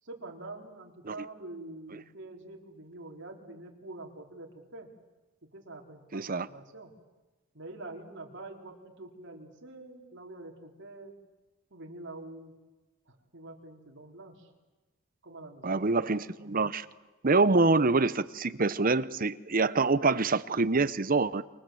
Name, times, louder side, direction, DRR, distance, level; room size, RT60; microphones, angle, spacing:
voice 1, 0.0-4.9 5.5-6.9 7.5-11.1 11.7-12.5 13.1-14.5 15.2-16.0 17.2-17.4, right 2 dB, 60° right, 4.1 m, -46 dB
voice 2, 6.1-6.5 15.6-16.9 17.2-21.4, right 3 dB, 40° right, 0.8 m, -25 dB
29.0 x 26.0 x 7.8 m
head